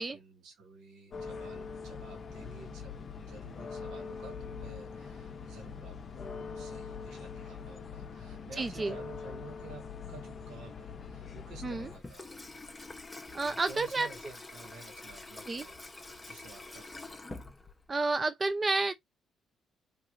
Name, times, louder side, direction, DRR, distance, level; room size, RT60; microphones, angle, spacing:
voice 1, 0.0-12.4 13.4-17.2, right 3 dB, 90° right, 1.5 m, -52 dB
sound 1, 1.1-12.0, left 5 dB, 45° left, 0.6 m, -43 dB
voice 2, 8.6-8.9 11.6-11.9 13.3-14.1 15.5-15.6 17.9-18.9, right 3 dB, 30° right, 0.5 m, -30 dB
Water tap faucet / Sink (filling or washing), 11.8-18.1, left 2 dB, 20° left, 0.8 m, -46 dB
3.0 x 3.0 x 2.5 m
cardioid pair, 90°, 0 cm